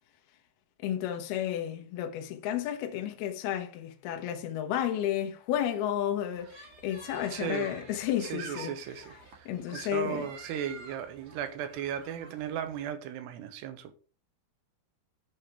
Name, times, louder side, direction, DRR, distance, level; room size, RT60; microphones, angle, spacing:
voice 1, 0.8-8.7 9.5-10.3, left 11 dB, 70° left, 2.7 m, -32 dB
sound 1, 6.3-12.9, right 3 dB, 50° right, 2.2 m, -49 dB
voice 2, 7.3-7.8 8.2-14.0, right 9 dB, 80° right, 3.0 m, -36 dB
8.8 x 6.4 x 3.5 m
omnidirectional pair, 5.0 m